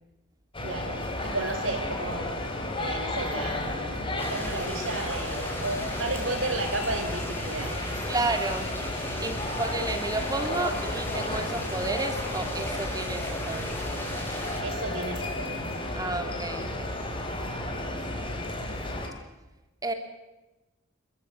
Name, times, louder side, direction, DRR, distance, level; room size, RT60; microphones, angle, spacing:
sound 1, 0.5-19.1, left 1 dB, 25° left, 4.3 m, -33 dB
voice 1, 0.6-2.4 2.8-8.1 14.6-15.6, right 2 dB, 80° right, 5 dB, 4.8 m, -33 dB
sound 2, 4.2-14.6, left 1 dB, 10° left, 6.1 m, -38 dB
voice 2, 8.1-8.7 9.2-13.8 16.0-16.7 19.8-19.9, right 2 dB, 20° right, 6 dB, 3.1 m, -31 dB
29.0 x 14.5 x 9.0 m, 1.0 s
head